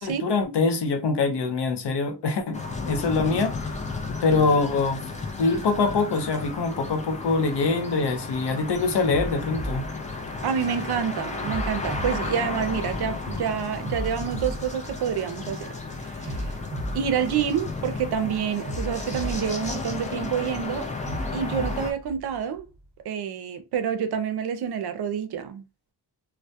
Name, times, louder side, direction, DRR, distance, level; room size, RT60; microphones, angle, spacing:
voice 1, 0.0-2.6 2.8-3.5 4.2-5.0 5.4-9.8, left 4 dB, 70° left, 0.7 m, -24 dB
sound 1, 2.5-21.9, left 3 dB, 20° left, 0.4 m, -34 dB
sound 2, 9.1-10.8 11.5-13.2 13.9-15.6 16.3-18.0 18.7-20.4 21.1-22.8, right 1 dB, 20° right, 0.9 m, -35 dB
voice 2, 10.4-15.7 16.0-16.5 16.9-20.9 21.3-22.7 23.0-25.6, right 8 dB, 65° right, 0.5 m, -28 dB
2.1 x 2.1 x 2.7 m
wide cardioid pair, 120°, 42 cm